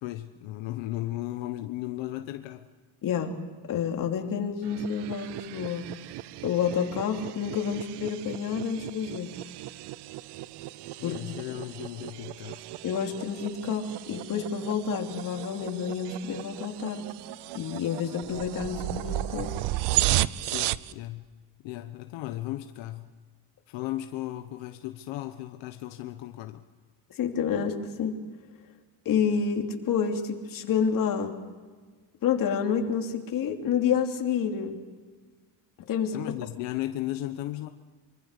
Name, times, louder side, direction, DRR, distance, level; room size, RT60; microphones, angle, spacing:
voice 1, 0.0-2.7 11.0-12.6 20.4-21.3 21.6-23.1 23.7-26.6 36.1-37.7, left 15 dB, 85° left, 8 dB, 1.2 m, -35 dB
voice 2, 3.0-3.3 3.7-5.9 6.4-9.3 11.0-11.2 12.8-17.1 17.5-19.5 27.1-28.2 29.0-31.4 32.2-34.8 35.8-36.2, left 7 dB, 45° left, 3 dB, 3.0 m, -29 dB
sound 1, 4.6-20.9, right 16 dB, 65° right, 0.7 m, -34 dB
24.5 x 24.5 x 6.7 m, 1.4 s
cardioid pair, 155°, 44 cm